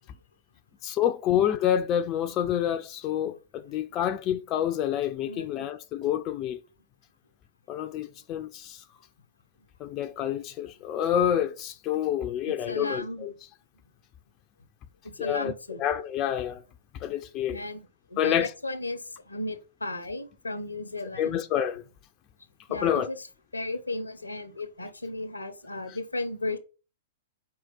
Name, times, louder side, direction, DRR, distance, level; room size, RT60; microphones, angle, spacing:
voice 1, 0.8-6.6 7.7-8.8 9.8-13.3 15.2-15.5 15.8-16.6 17.0-17.6 18.2-18.5 21.2-21.8 22.7-23.1, left 10 dB, 35° left, 0.5 m, -28 dB
voice 2, 5.2-5.7 12.5-13.4 15.0-15.8 17.5-17.8 18.1-21.4 22.7-23.3 23.5-26.6, left 2 dB, 90° left, 0.9 m, -35 dB
4.8 x 4.5 x 5.7 m
figure-of-eight pair, 105°, 0 cm